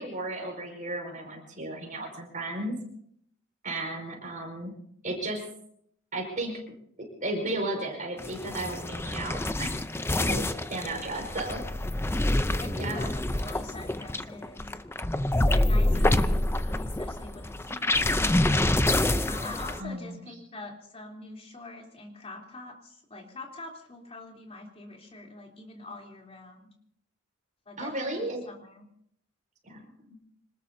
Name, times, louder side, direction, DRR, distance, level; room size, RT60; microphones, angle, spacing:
voice 1, 0.0-2.8 3.6-4.7 5.0-5.4 6.1-6.5 7.0-9.7 10.2-11.6 12.8-13.1 15.9-16.4 19.8-20.2 27.8-28.4 29.6-30.2, right 2 dB, 40° right, 2 dB, 5.3 m, -34 dB
sound 1, 8.2-19.8, left 1 dB, 10° left, 0.6 m, -27 dB
voice 2, 12.6-14.8 15.5-18.6 19.3-26.7 27.7-28.9, left 2 dB, 30° left, 0 dB, 3.5 m, -44 dB
26.0 x 19.5 x 2.8 m, 0.68 s
head